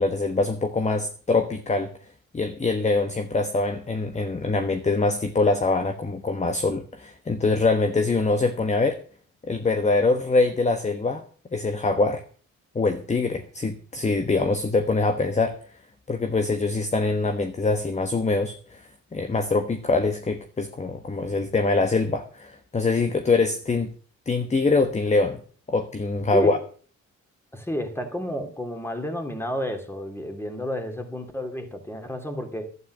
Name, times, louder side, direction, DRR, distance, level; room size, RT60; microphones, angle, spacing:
voice 1, 0.0-1.9 2.3-9.0 9.4-11.2 11.5-12.2 12.7-15.6 16.1-23.9 24.3-25.4 25.7-26.6, left 3 dB, 25° left, 8 dB, 1.2 m, -24 dB
voice 2, 27.5-32.7, equal, 10° left, 6 dB, 2.9 m, -31 dB
12.0 x 9.6 x 6.2 m, 0.43 s
cardioid pair, 90°, 30 cm